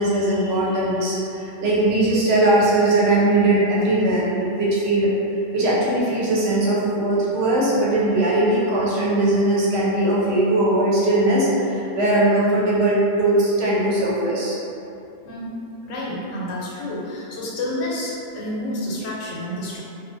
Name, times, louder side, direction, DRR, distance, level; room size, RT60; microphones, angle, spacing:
voice 1, 0.0-5.1 5.5-14.6, right 1 dB, 65° right, -6 dB, 0.8 m, -20 dB
voice 2, 15.2-15.6 15.8-19.8, left 1 dB, 90° left, -5 dB, 1.0 m, -29 dB
2.6 x 2.2 x 2.5 m, 2.7 s
omnidirectional pair, 1.3 m